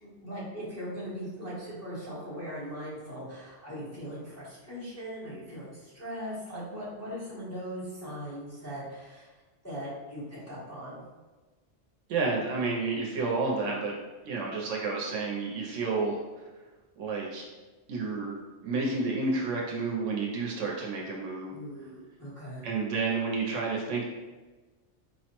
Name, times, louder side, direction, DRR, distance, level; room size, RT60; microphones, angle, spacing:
voice 1, 0.0-9.3 9.6-11.0 21.5-22.6, equal, 15° left, -8 dB, 0.9 m, -39 dB
voice 2, 12.1-13.9 14.2-16.2 17.0-17.4 17.9-21.6 22.6-24.0, right 3 dB, 85° right, -2 dB, 0.9 m, -30 dB
4.3 x 2.0 x 2.9 m, 1.2 s
omnidirectional pair, 1.2 m